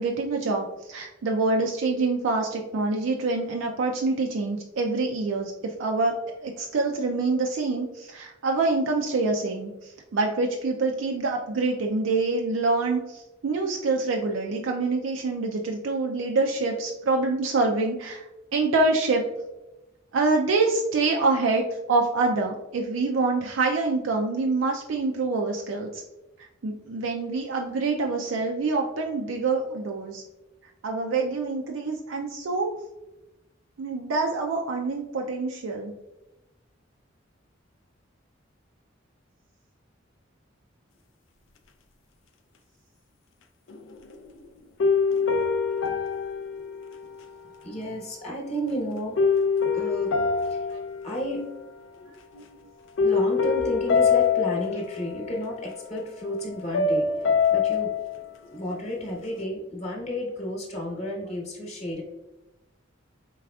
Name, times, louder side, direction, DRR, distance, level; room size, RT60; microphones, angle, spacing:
voice 1, 0.0-18.3 18.5-19.2 20.1-26.0 26.6-30.2 30.8-32.8 33.8-35.9 46.6-46.7 50.7-50.8, right 3 dB, 85° right, 1 dB, 0.4 m, -26 dB
sound 1, 43.7-44.4 44.8-47.5 49.2-51.7 52.0-52.4 53.0-55.7 56.7-58.2, left 5 dB, 80° left, 0.4 m, -25 dB
voice 2, 47.4-49.2 49.7-50.1 50.5-50.6 51.0-51.5 53.0-58.2 58.5-62.0, equal, 35° left, -2 dB, 1.0 m, -32 dB
4.7 x 3.3 x 2.3 m, 0.99 s
head